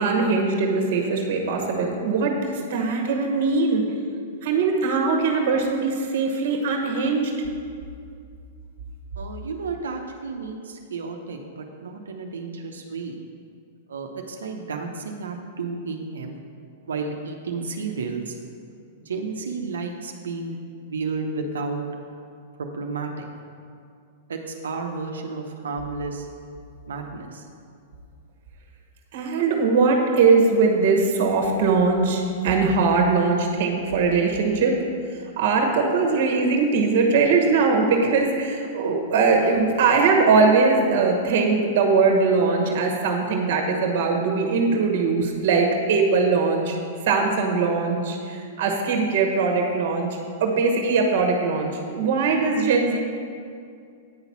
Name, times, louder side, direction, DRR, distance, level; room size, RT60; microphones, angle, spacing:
voice 1, 0.0-3.8 4.4-7.3 29.1-34.8 35.4-46.8 47.0-53.0, right 4 dB, 60° right, 1 dB, 1.2 m, -21 dB
voice 2, 9.2-13.2 13.9-16.4 16.9-18.4 19.0-20.5 20.8-21.8 22.6-23.3 24.3-26.3 26.9-27.5, right 4 dB, 90° right, 2 dB, 0.7 m, -32 dB
9.0 x 4.0 x 5.8 m, 2.3 s
hypercardioid pair, 120°, 0 cm